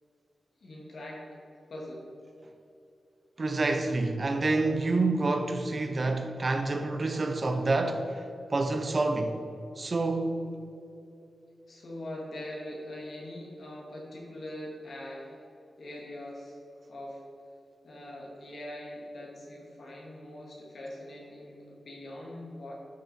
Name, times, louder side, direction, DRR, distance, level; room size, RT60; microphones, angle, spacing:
voice 1, 0.6-1.2 1.7-2.1 11.7-15.5 15.8-16.6 16.9-17.2 17.8-22.7, left 1 dB, 60° left, 2.4 m, -42 dB
voice 2, 3.4-8.2 8.5-9.4 9.8-10.6, right 2 dB, 35° right, 0.8 m, -28 dB
12.0 x 6.8 x 4.4 m
wide cardioid pair, 155°, 0 cm